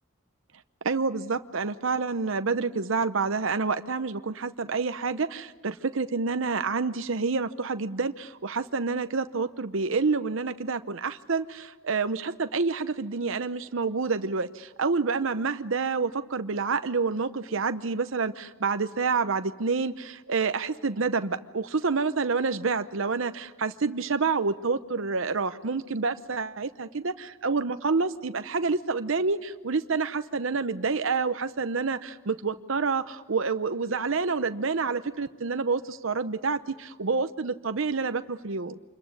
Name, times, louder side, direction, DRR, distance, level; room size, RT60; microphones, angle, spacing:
voice 1, 0.8-38.8, right 4 dB, 65° right, 10 dB, 0.8 m, -28 dB
27.0 x 22.0 x 9.6 m, 1.3 s
head